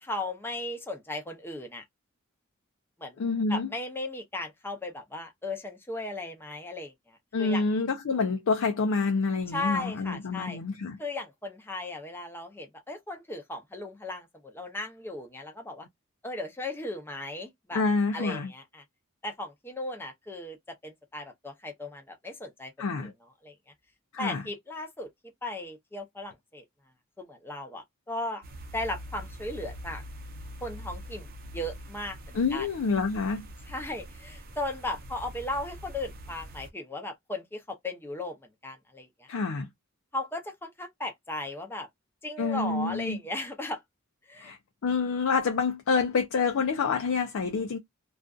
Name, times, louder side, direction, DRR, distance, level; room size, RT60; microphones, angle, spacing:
voice 1, 0.0-1.8 3.0-3.2 3.5-7.6 9.5-10.6 11.0-15.9 16.2-17.8 18.1-18.8 19.2-20.6 20.8-22.7 23.0-23.1 23.4-23.5 24.2-25.1 25.4-26.6 27.2-28.4 28.7-30.0 30.6-31.3 31.5-32.7 33.7-39.3 40.1-41.9 42.2-43.8 44.3-44.5, left 2 dB, 10° left, 0.6 m, -36 dB
voice 2, 3.2-3.7 7.3-11.0 17.7-18.5 22.8-23.1 24.1-24.4 32.3-33.5 39.3-39.7 42.4-43.2 44.4-47.8, left 4 dB, 75° left, 0.4 m, -27 dB
sound 1, 28.4-36.7, equal, 45° right, 0.6 m, -44 dB
2.5 x 2.3 x 2.3 m
head